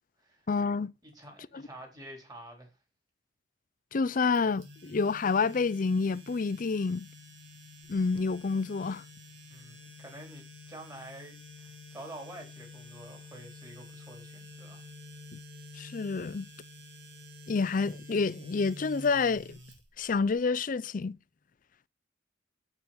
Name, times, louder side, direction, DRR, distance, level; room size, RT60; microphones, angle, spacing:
voice 1, 0.5-0.9 3.9-7.1 7.9-9.0 15.3-15.4 15.8-16.5 17.5-19.6 20.0-21.2, left 4 dB, 45° left, 0.5 m, -28 dB
voice 2, 1.0-2.7 9.5-14.8, right 1 dB, 20° right, 3.6 m, -48 dB
sound 1, 4.4-20.3, left 2 dB, 80° right, 3.0 m, -49 dB
7.8 x 7.2 x 5.8 m
head